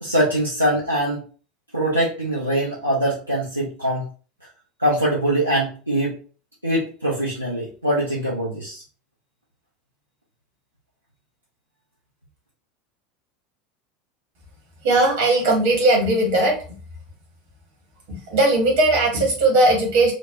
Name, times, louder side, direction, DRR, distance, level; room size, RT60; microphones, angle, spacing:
voice 1, 0.0-1.2 1.7-4.1 4.8-6.2 6.6-8.8, right 1 dB, 90° right, -7 dB, 0.7 m, -23 dB
voice 2, 14.8-16.8 18.1-20.1, right 2 dB, 55° right, -1 dB, 1.3 m, -18 dB
3.3 x 2.1 x 2.5 m, 0.39 s
figure-of-eight pair, 75°, 0 cm